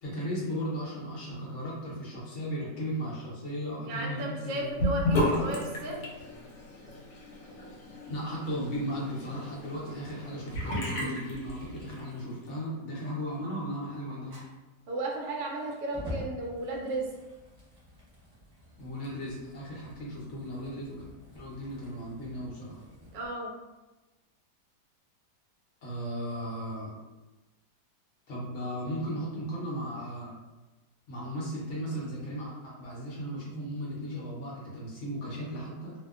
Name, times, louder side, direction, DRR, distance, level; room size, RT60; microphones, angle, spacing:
voice 1, 0.0-4.8 8.0-14.4 18.8-21.0 21.3-22.8 25.8-27.0 28.3-30.3 31.1-35.9, equal, 55° left, -5 dB, 0.9 m, -36 dB
voice 2, 3.9-6.1 14.9-17.1 23.1-23.5, right 1 dB, 70° right, -1 dB, 0.8 m, -34 dB
Sink (filling or washing) / Bathtub (filling or washing), 4.8-12.1, left 1 dB, 85° left, 1.2 m, -33 dB
Fire, 14.3-23.3, equal, 30° right, 0.4 m, -48 dB
2.8 x 2.1 x 2.3 m, 1.1 s
omnidirectional pair, 1.8 m